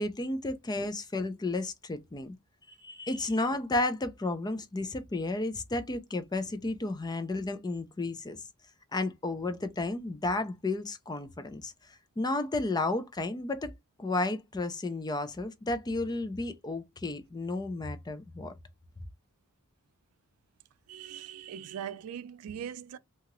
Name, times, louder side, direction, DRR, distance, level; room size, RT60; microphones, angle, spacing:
voice 1, 0.0-2.4 2.7-8.4 8.9-13.7 14.0-18.5, left 2 dB, 20° left, 0.4 m, -32 dB
voice 2, 2.8-3.3 20.9-23.0, right 8 dB, 90° right, 0.3 m, -41 dB
2.8 x 2.4 x 2.9 m
head